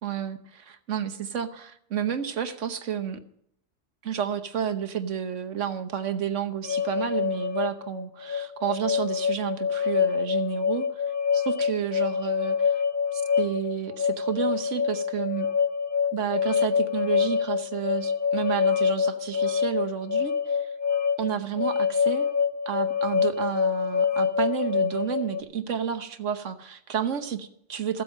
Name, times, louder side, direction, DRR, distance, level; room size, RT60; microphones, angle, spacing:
voice 1, 0.0-3.2 4.0-11.0 11.3-12.7 13.1-15.5 16.1-20.7 21.2-22.3 22.7-28.0, right 8 dB, 70° right, 9 dB, 1.3 m, -31 dB
sound 1, 6.6-25.4, left 6 dB, 45° left, 1.1 m, -26 dB
15.5 x 7.9 x 6.5 m, 0.70 s
omnidirectional pair, 1.3 m